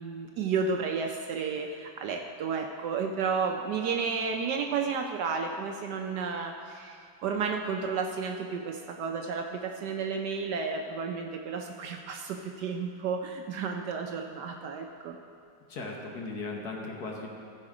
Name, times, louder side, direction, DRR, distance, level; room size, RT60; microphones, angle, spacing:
voice 1, 0.0-7.0 7.2-15.2, right 5 dB, 70° right, 3 dB, 1.1 m, -32 dB
voice 2, 15.7-17.3, left 3 dB, 55° left, 0 dB, 1.5 m, -37 dB
15.0 x 5.8 x 4.9 m, 2.5 s
omnidirectional pair, 2.1 m